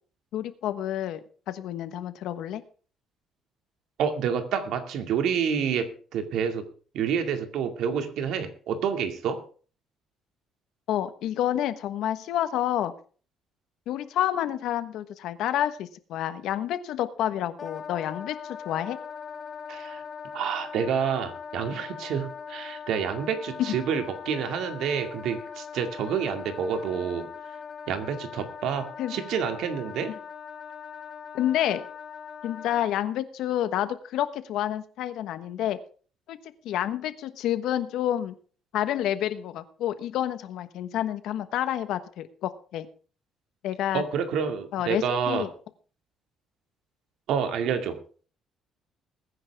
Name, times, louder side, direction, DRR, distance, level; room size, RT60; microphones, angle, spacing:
voice 1, 0.3-1.2 1.5-2.6 10.9-12.9 13.9-19.0 23.6-23.8 29.0-29.2 31.3-31.8 32.4-35.8 36.3-36.4 36.6-38.4 38.7-42.9 43.6-44.0 44.7-45.5, left 11 dB, 75° left, 11 dB, 1.2 m, -29 dB
voice 2, 4.0-6.7 6.9-9.4 19.7-20.0 20.3-27.3 27.9-30.1 43.9-45.5 47.3-48.0, right 7 dB, 75° right, 6 dB, 2.2 m, -28 dB
Wind instrument woodwind instrument, 17.6-32.9, left 6 dB, 35° left, 1.1 m, -40 dB
20.5 x 9.8 x 3.5 m, 0.40 s
cardioid pair, 135°, 0 cm